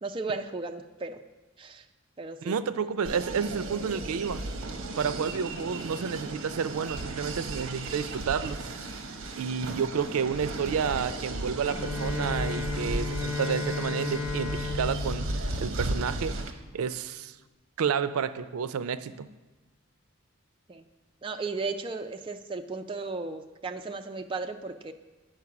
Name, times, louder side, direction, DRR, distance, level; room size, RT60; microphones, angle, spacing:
voice 1, 0.0-1.2 1.6-1.8 2.2-2.6 20.7-20.8 21.2-24.9, right 3 dB, 25° right, 5 dB, 0.4 m, -35 dB
voice 2, 2.4-4.4 5.0-8.6 9.4-15.2 15.6-16.4 16.7-17.4 17.8-19.3, right 6 dB, 90° right, 13 dB, 0.4 m, -30 dB
sound 1, 3.0-16.5, right 2 dB, 65° right, 0.8 m, -35 dB
Bowed string instrument, 11.6-16.6, left 4 dB, 85° left, 0.7 m, -35 dB
9.7 x 4.6 x 5.9 m, 1.2 s
head